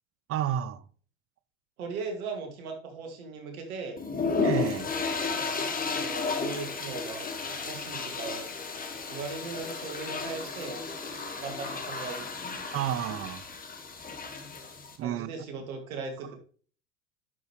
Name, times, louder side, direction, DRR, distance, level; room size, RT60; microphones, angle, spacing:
voice 1, 0.3-0.8 4.4-4.9 12.7-13.4 15.0-15.4, right 10 dB, 35° right, 0.6 m, -31 dB
voice 2, 1.8-4.0 5.9-8.5 9.1-10.8 11.4-12.7 15.0-16.4, right 4 dB, 85° right, 2.3 m, -38 dB
sound 1, 4.0-15.0, left 4 dB, 20° left, 1.5 m, -33 dB
10.5 x 5.2 x 3.1 m
hypercardioid pair, 95°, 41 cm